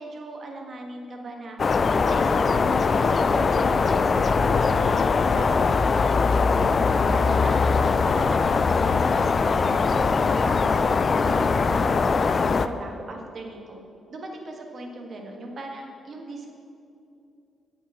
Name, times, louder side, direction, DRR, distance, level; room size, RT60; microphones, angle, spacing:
voice 1, 0.0-1.6 2.1-5.1 5.4-13.8 14.1-16.5, right 2 dB, 50° right, 2 dB, 1.5 m, -39 dB
sound 1, 1.6-12.7, left 4 dB, 40° left, 0.4 m, -21 dB
8.7 x 6.0 x 8.1 m, 2.6 s
cardioid pair, 100°, 0 cm